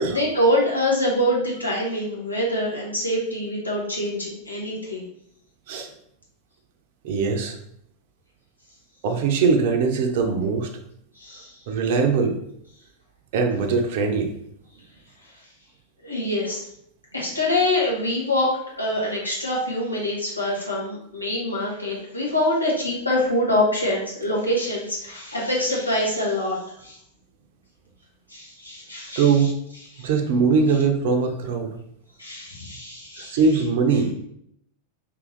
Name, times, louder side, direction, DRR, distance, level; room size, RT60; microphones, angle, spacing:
voice 1, 0.1-5.1 11.2-11.6 16.0-16.6 17.1-27.0 28.3-29.5 29.9-30.1 32.2-33.4, left 1 dB, 85° left, -4 dB, 1.2 m, -25 dB
voice 2, 7.0-7.6 9.0-10.7 11.7-12.4 13.3-14.3 29.2-29.6 30.0-31.8 33.3-34.1, right 5 dB, 50° right, 4 dB, 0.6 m, -21 dB
3.7 x 2.8 x 3.9 m, 0.72 s
figure-of-eight pair, 90°, 0 cm